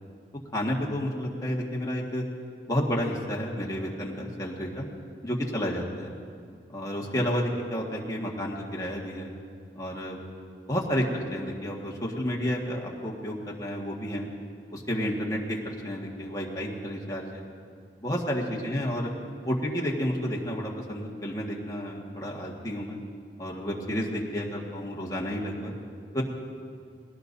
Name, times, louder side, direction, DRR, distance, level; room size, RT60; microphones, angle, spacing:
voice 1, 0.5-2.2 2.7-4.8 5.2-6.1 6.7-9.3 9.7-10.2 10.7-14.3 14.7-17.4 18.0-19.1 19.4-23.0 23.4-25.7 26.1-26.2, equal, 20° left, -3 dB, 1.7 m, -31 dB
20.5 x 17.5 x 2.7 m, 2.2 s
head